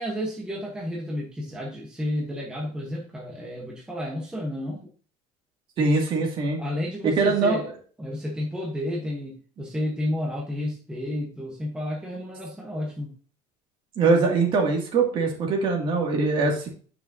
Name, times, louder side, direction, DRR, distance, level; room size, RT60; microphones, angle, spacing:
voice 1, 0.0-4.9 6.6-7.7 8.0-13.1, left 1 dB, 5° right, -2 dB, 1.1 m, -31 dB
voice 2, 5.8-6.6 7.0-7.6 14.0-16.7, right 3 dB, 40° right, 1 dB, 2.2 m, -22 dB
9.6 x 5.9 x 2.7 m, 0.42 s
cardioid pair, 175°, 13 cm